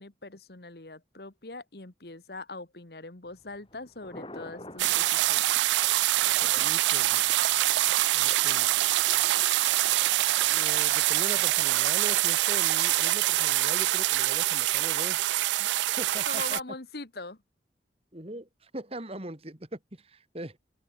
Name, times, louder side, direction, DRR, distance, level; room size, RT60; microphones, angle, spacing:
voice 1, 0.0-5.5 15.6-15.7 16.3-17.4, left 3 dB, 60° left, 1.7 m, -42 dB
Thunder, 3.3-9.3, left 1 dB, 30° left, 6.8 m, -49 dB
sound 1, 4.8-16.6, right 16 dB, 80° right, 0.3 m, -25 dB
voice 2, 6.5-7.3 8.1-9.0 10.5-15.3 16.0-16.6 18.1-20.6, right 1 dB, 35° right, 2.6 m, -41 dB
sound 2, 8.2-13.3, equal, ahead, 5.8 m, -58 dB
open air
head